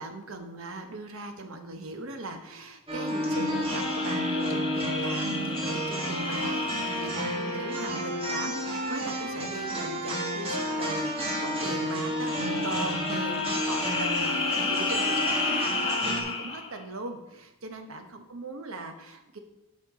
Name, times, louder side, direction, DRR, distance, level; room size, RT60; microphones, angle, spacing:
voice 1, 0.0-19.4, right 2 dB, 75° right, 6 dB, 0.9 m, -39 dB
sound 1, 2.9-16.2, equal, 30° right, 1.5 m, -30 dB
sound 2, 3.5-8.3 12.1-16.8, left 4 dB, 25° left, 0.8 m, -33 dB
12.5 x 4.3 x 4.1 m, 0.98 s
head